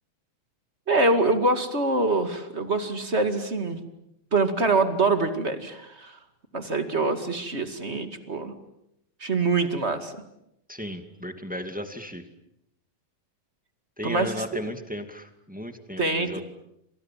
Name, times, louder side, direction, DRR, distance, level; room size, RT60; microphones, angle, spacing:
voice 1, 0.9-3.8 4.3-6.2 6.5-8.5 9.2-10.1 14.0-14.4 16.0-16.4, right 3 dB, 25° right, 8 dB, 1.8 m, -25 dB
voice 2, 10.7-12.2 14.0-16.4, equal, 5° right, 7 dB, 1.0 m, -35 dB
29.5 x 27.0 x 7.5 m, 0.81 s
omnidirectional pair, 4.1 m